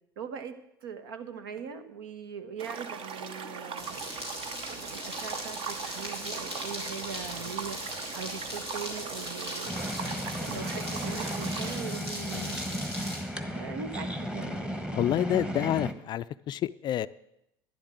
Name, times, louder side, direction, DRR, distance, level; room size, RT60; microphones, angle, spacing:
voice 1, 0.2-0.5 0.8-4.0 4.6-7.8 8.1-9.8 10.4-12.6 13.5-14.6, right 6 dB, 65° right, 1.3 m, -40 dB
sound 1, 2.6-11.8, right 6 dB, 40° right, 1.2 m, -40 dB
sound 2, 3.8-13.2, equal, 90° right, 3.8 m, -39 dB
sound 3, 9.7-15.9, equal, 5° right, 1.3 m, -35 dB
voice 2, 15.0-17.1, left 11 dB, 35° left, 0.4 m, -28 dB
12.0 x 10.5 x 7.7 m
figure-of-eight pair, 70°, 13 cm